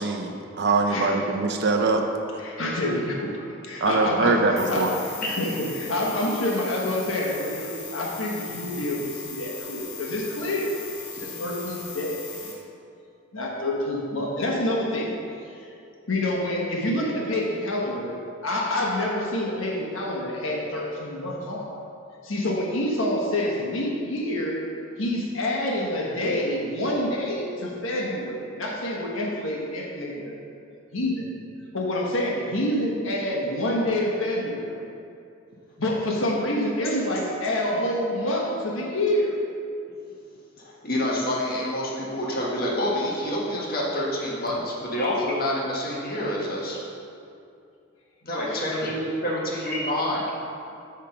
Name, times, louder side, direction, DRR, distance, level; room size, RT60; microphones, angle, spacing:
voice 1, 0.0-2.0 2.3-2.4 3.8-4.9, right 3 dB, 55° right, 4 dB, 0.6 m, -23 dB
voice 2, 2.4-10.7 11.1-12.5 13.3-15.2 15.6-15.7 16.1-18.1 18.4-21.7 22.2-24.6 25.0-30.3 30.9-31.3 31.7-34.9 35.8-39.4 48.5-48.9, left 1 dB, 85° left, -2 dB, 1.4 m, -27 dB
sound 1, 4.6-12.5, left 6 dB, 70° left, 1.7 m, -39 dB
voice 3, 40.6-46.8 48.2-50.2, left 1 dB, 50° left, -4 dB, 1.5 m, -27 dB
8.4 x 3.7 x 5.9 m, 2.5 s
head